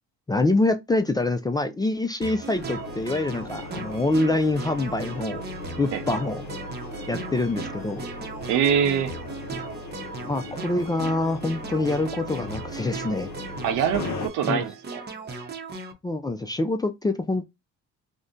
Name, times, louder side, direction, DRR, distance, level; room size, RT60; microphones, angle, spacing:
voice 1, 0.3-5.4 5.8-6.4 7.1-8.0 10.3-13.3 14.5-14.6 16.0-17.4, left 2 dB, 15° left, 0.3 m, -25 dB
sound 1, 2.2-15.9, right 4 dB, 35° right, 0.7 m, -37 dB
sound 2, 2.5-14.3, left 2 dB, 60° left, 0.6 m, -38 dB
voice 2, 8.5-9.1 13.6-15.0, right 8 dB, 85° right, 0.6 m, -24 dB
2.6 x 2.1 x 3.6 m
cardioid pair, 95°, 31 cm